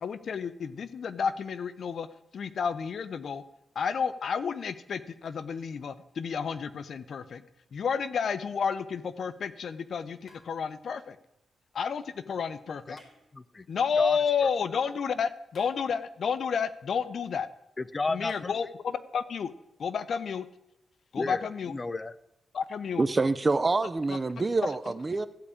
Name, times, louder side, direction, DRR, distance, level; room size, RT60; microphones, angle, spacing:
voice 1, 0.0-2.1 2.3-3.4 3.8-7.4 7.7-11.2 11.7-13.0 13.7-15.3 15.6-17.5 18.1-19.5 19.8-20.5 21.1-21.7 22.5-23.0 24.1-24.2 24.6-24.7, left 6 dB, 65° left, 14 dB, 0.7 m, -31 dB
sound 1, 10.2-11.0 12.9-13.7 15.5-16.3 18.3-18.5, left 2 dB, 50° left, 4.3 m, -58 dB
voice 2, 13.3-13.7 14.0-14.2 17.8-18.5 21.1-22.1, left 3 dB, 30° left, 16 dB, 0.5 m, -33 dB
voice 3, 23.0-25.3, right 3 dB, 25° right, 13 dB, 0.6 m, -26 dB
14.5 x 5.0 x 8.5 m, 0.87 s
cardioid pair, 110°, 0 cm